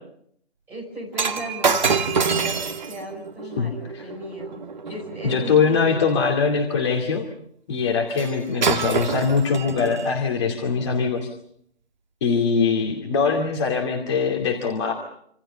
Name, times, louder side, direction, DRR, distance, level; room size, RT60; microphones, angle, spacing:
voice 1, 0.7-4.6 4.9-6.0, right 1 dB, 5° right, -4 dB, 5.3 m, -37 dB
Shatter, 1.1-5.5 8.2-8.3 8.6-10.1 10.8-11.0, right 5 dB, 40° right, 2.1 m, -26 dB
voice 2, 3.6-4.0 5.2-7.3 7.7-11.3 12.2-14.9, left 5 dB, 25° left, -1 dB, 2.5 m, -22 dB
27.5 x 26.5 x 5.6 m, 0.70 s
figure-of-eight pair, 160°, 33 cm